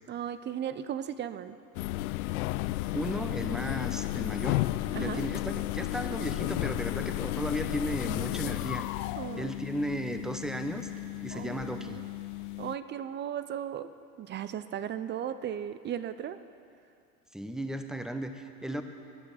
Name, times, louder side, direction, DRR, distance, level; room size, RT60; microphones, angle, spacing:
voice 1, 0.1-1.6 4.9-5.2 9.2-9.5 11.3-12.0 12.6-13.9 14.2-16.4, right 9 dB, 25° right, 13 dB, 0.4 m, -36 dB
sound 1, 1.7-12.8, left 18 dB, 65° left, 0.5 m, -33 dB
voice 2, 2.9-4.6 5.0-9.1 9.4-10.9 11.2-12.0 17.3-18.8, equal, ahead, 7 dB, 0.9 m, -35 dB
20.0 x 11.5 x 4.1 m, 2.5 s
hypercardioid pair, 75°, 47 cm